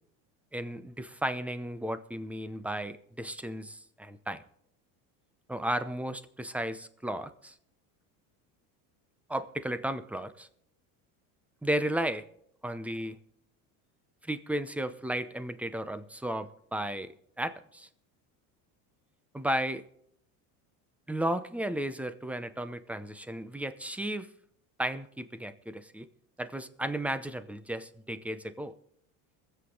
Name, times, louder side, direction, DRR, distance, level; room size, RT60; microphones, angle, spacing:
voice 1, 0.5-4.4 5.5-7.5 9.3-10.5 11.6-12.2 12.6-13.2 14.3-17.9 19.3-19.9 21.1-24.3 24.8-26.1 26.4-28.7, right 1 dB, 5° right, 0.7 m, -34 dB
22.5 x 8.1 x 3.9 m
supercardioid pair, 115°, 44 cm